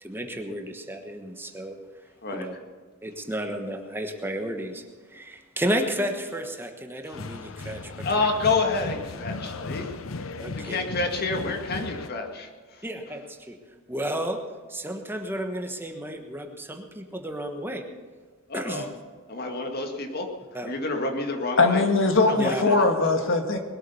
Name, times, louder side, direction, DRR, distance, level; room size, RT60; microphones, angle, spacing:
voice 1, 0.0-1.8 2.3-2.5 3.0-4.8 5.1-8.3 10.4-10.9 12.8-13.6 13.9-14.4 14.7-17.9 18.5-18.9 20.5-20.8 22.3-22.6, right 1 dB, 10° right, 4 dB, 1.3 m, -32 dB
sound 1, 7.1-12.1, left 3 dB, 85° left, 0.8 m, -36 dB
voice 2, 8.0-9.9 10.6-12.5 18.5-18.9 19.3-20.3 20.6-21.8 22.3-22.9, left 3 dB, 50° left, 3 dB, 1.9 m, -28 dB
voice 3, 21.6-23.6, left 3 dB, 65° left, 6 dB, 1.6 m, -21 dB
21.0 x 8.5 x 7.0 m, 1.5 s
head